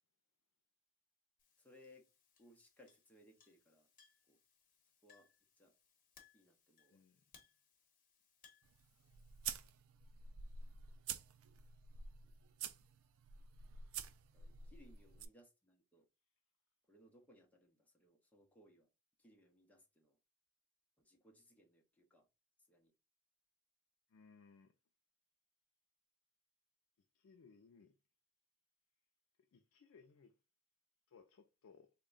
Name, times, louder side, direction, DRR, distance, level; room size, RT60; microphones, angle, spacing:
Chink clink, 1.4-9.7, left 6 dB, 40° left, 0.9 m, -70 dB
voice 1, 1.6-2.0 2.4-3.9 4.3-4.4 5.0-5.3 5.6-5.7 6.3-7.0 12.2-12.3 14.3-16.0 16.9-18.9 19.2-20.2 21.0-22.3 22.7-22.9, left 1 dB, 5° left, 0.7 m, -66 dB
voice 2, 6.9-7.2 15.1-15.2 24.1-24.7 27.1-28.0 29.4-30.4 31.1-31.9, left 5 dB, 70° left, 0.4 m, -64 dB
sound 1, 8.6-15.3, right 7 dB, 70° right, 0.4 m, -49 dB
3.6 x 2.2 x 3.8 m
head